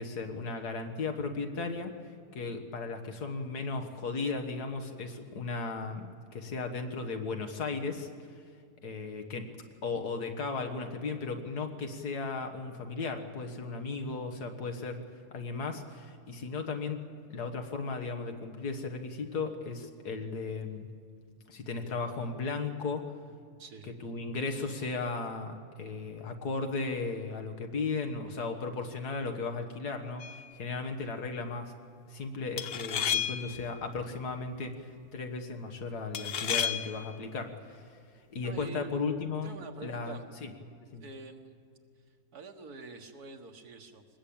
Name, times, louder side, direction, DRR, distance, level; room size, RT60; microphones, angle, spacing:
voice 1, 0.0-2.0 2.4-8.1 8.8-9.5 9.8-15.0 15.3-20.9 21.5-23.1 23.8-31.7 32.1-37.9 38.3-39.5 39.8-40.5 40.9-41.0, left 4 dB, 85° left, 5 dB, 2.0 m, -36 dB
voice 2, 23.6-23.9 38.4-39.0 39.4-40.2 41.0-41.6 42.3-44.1, right 3 dB, 75° right, 4 dB, 2.0 m, -46 dB
sound 1, 30.2-30.5 32.6-33.6 36.1-37.1, left 8 dB, 55° left, 0.7 m, -32 dB
22.5 x 20.0 x 8.7 m, 2.2 s
omnidirectional pair, 1.6 m